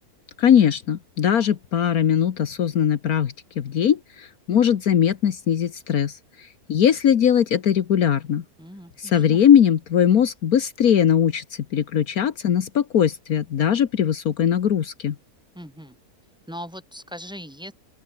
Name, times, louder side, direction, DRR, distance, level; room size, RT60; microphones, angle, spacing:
voice 1, 0.4-8.4 9.0-15.2, left 9 dB, 70° left, 1.6 m, -20 dB
voice 2, 8.6-9.4 15.6-16.0 16.5-17.7, equal, 5° right, 5.3 m, -39 dB
open air
omnidirectional pair, 1.6 m